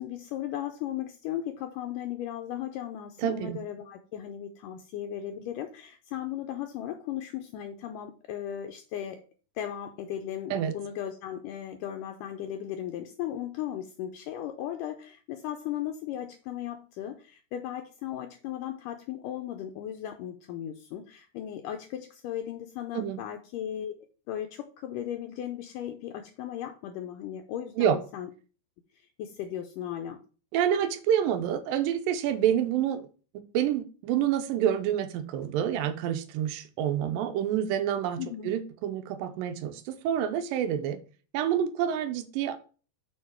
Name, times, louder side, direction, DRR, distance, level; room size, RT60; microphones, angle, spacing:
voice 1, 0.0-9.2 9.6-23.9 24.3-28.3 28.9-30.2 38.2-38.5, left 11 dB, 80° left, 2.0 m, -36 dB
voice 2, 3.2-3.6 10.5-10.7 22.9-23.2 27.8-28.0 30.5-33.0 33.3-38.2 38.4-41.0 41.3-42.7, right 9 dB, 80° right, 2.4 m, -28 dB
6.6 x 4.7 x 4.5 m
omnidirectional pair, 4.2 m